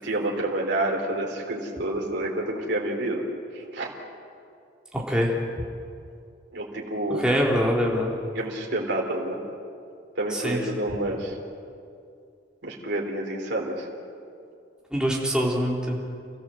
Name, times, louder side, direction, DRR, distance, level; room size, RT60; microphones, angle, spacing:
voice 1, 0.0-3.2 3.5-3.9 6.5-7.3 8.3-9.4 10.2-11.4 12.6-13.9, right 1 dB, 65° right, -1 dB, 3.7 m, -28 dB
voice 2, 4.9-5.4 7.2-8.1 10.3-10.6 14.9-16.0, equal, 5° right, -3 dB, 3.5 m, -24 dB
29.0 x 15.0 x 7.9 m, 2.4 s
head